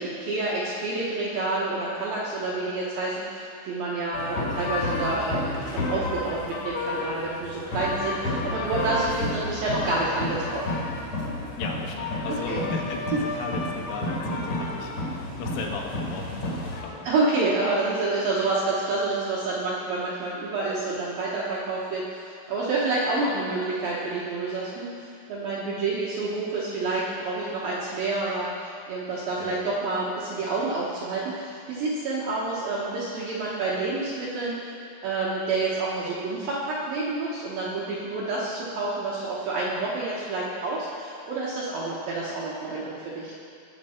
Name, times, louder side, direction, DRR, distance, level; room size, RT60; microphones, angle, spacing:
voice 1, 0.0-10.6 12.3-12.6 14.2-14.4 17.0-24.9 25.3-34.6 35.0-43.3, right 3 dB, 75° right, -7 dB, 2.1 m, -28 dB
sound 1, 4.1-16.8, left 2 dB, 65° left, 1.7 m, -31 dB
voice 2, 11.6-17.1 29.4-29.5, left 4 dB, 85° left, 0 dB, 3.8 m, -36 dB
19.5 x 6.7 x 4.4 m, 2.5 s
omnidirectional pair, 5.7 m